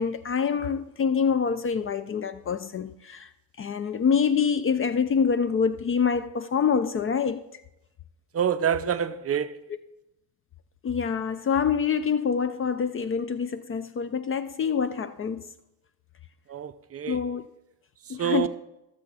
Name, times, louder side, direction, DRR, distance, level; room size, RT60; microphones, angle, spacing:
voice 1, 0.0-3.3 3.6-7.6 8.8-8.9 10.8-15.5 17.1-17.4 18.1-18.5, left 6 dB, 30° left, 0.5 m, -26 dB
voice 2, 8.3-9.6 16.5-17.2 18.2-18.5, right 9 dB, 30° right, 0.6 m, -26 dB
20.0 x 7.0 x 4.1 m
supercardioid pair, 85°, 47 cm